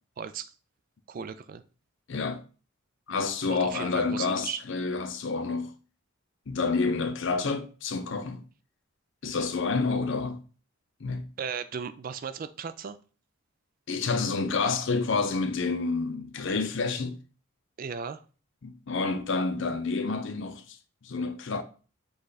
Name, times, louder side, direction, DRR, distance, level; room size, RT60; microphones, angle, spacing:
voice 1, 0.2-0.5 1.1-1.6 3.5-4.6 11.4-13.0 17.8-18.2, right 6 dB, 40° right, 0.3 m, -36 dB
voice 2, 2.1-2.4 3.1-5.7 6.5-8.4 9.2-10.4 11.0-11.3 13.9-17.2 18.6-20.8 21.0-21.6, left 4 dB, 55° left, 0.5 m, -29 dB
5.3 x 2.4 x 4.0 m
head